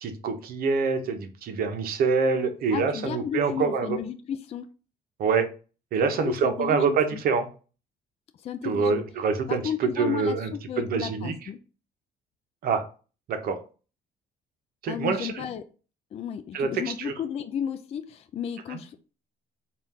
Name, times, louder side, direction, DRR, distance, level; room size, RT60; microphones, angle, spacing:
voice 1, 0.0-4.0 5.2-5.5 5.9-7.5 8.6-10.5 10.8-11.3 12.6-12.8 13.3-13.6 14.8-15.4 16.5-17.1 18.7-18.8, right 5 dB, 60° right, 7 dB, 0.8 m, -26 dB
voice 2, 2.7-4.7 6.2-7.2 8.4-9.0 9.5-11.6 14.8-15.7 16.1-19.0, left 8 dB, 40° left, 9 dB, 0.4 m, -33 dB
4.2 x 2.5 x 3.6 m, 0.35 s
cardioid pair, 110°, 17 cm